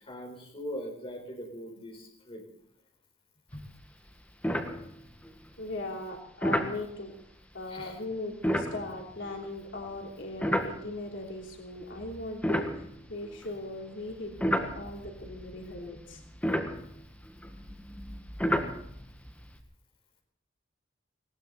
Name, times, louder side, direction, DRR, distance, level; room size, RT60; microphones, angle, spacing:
voice 1, 0.0-2.4 3.5-3.6 7.7-7.9, equal, 30° left, 1 dB, 4.3 m, -41 dB
sound 1, 3.6-3.8 4.1-4.2 4.4-5.3 6.4-6.8 8.3-11.2 11.8-13.6 14.1-19.6, equal, 10° left, 1.6 m, -32 dB
voice 2, 5.6-7.1 7.5-16.2, left 2 dB, 75° left, -1 dB, 3.3 m, -39 dB
19.5 x 18.0 x 4.1 m, 0.67 s
head